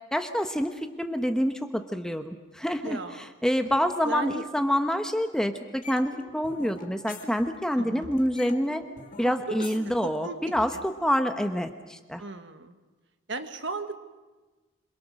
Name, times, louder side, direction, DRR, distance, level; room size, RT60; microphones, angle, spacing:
voice 1, 0.1-8.8 9.2-12.2, equal, 5° left, 7 dB, 1.0 m, -27 dB
voice 2, 2.8-3.3 4.0-4.4 7.8-8.1 9.2-9.7 10.0-10.4 10.7-10.8 12.2-12.8 13.3-13.9, right 3 dB, 60° right, 8 dB, 1.5 m, -36 dB
sound 1, 5.8-7.8 8.0-10.8, left 3 dB, 40° left, 2.2 m, -45 dB
26.5 x 22.0 x 6.4 m, 1.2 s
head